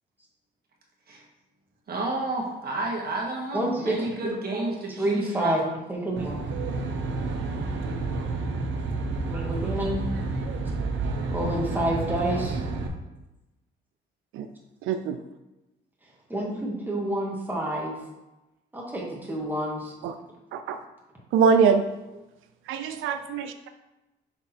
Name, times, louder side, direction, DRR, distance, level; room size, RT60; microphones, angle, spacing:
voice 1, 1.9-5.7, right 2 dB, 50° right, -1 dB, 1.6 m, -31 dB
voice 2, 3.5-5.6 5.9-6.5 9.3-10.0 11.3-12.6 16.3-18.0 18.7-20.0, right 1 dB, 10° right, -3 dB, 1.8 m, -29 dB
Aircraft, 6.2-12.9, right 3 dB, 70° right, 0.8 m, -30 dB
voice 3, 14.9-15.2 20.0-20.1 20.5-20.8 21.3-21.8 22.7-23.5, right 6 dB, 85° right, 8 dB, 0.5 m, -23 dB
6.0 x 3.6 x 4.4 m, 1.0 s
cardioid pair, 90°, 20 cm